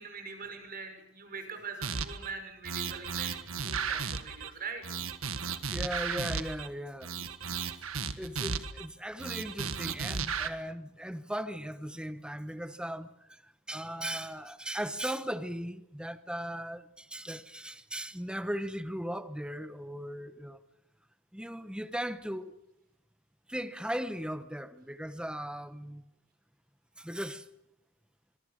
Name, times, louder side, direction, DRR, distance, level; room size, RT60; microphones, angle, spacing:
voice 1, 0.0-3.4 3.6-4.8, right 5 dB, 45° right, 5.6 m, -42 dB
sound 1, 1.8-2.3 2.6-4.5 4.8-6.7 7.0-8.9 9.2-10.5, right 6 dB, 75° right, 1.7 m, -34 dB
voice 2, 5.7-7.2 8.2-13.1 13.7-20.6 21.3-22.6 23.5-26.0 27.0-27.4, equal, 5° right, 1.1 m, -37 dB
26.0 x 22.5 x 6.6 m
head